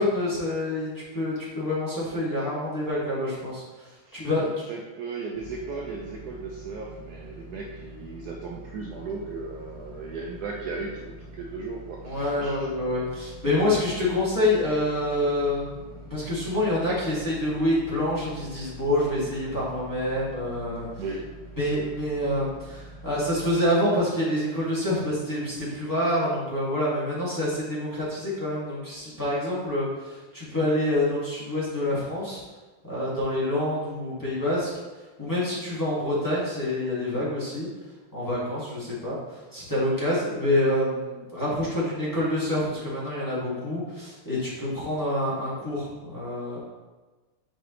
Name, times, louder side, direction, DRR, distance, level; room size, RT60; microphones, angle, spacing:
voice 1, 0.0-4.5 12.0-20.9 21.6-32.4 32.9-34.7 35.2-37.7 38.1-46.6, left 1 dB, 10° left, -10 dB, 1.8 m, -27 dB
voice 2, 4.0-12.7 21.0-21.4, right 4 dB, 85° right, -1 dB, 0.8 m, -36 dB
sound 1, 5.3-23.5, right 1 dB, 25° right, 0.6 m, -45 dB
5.7 x 5.6 x 3.1 m, 1.2 s
omnidirectional pair, 2.4 m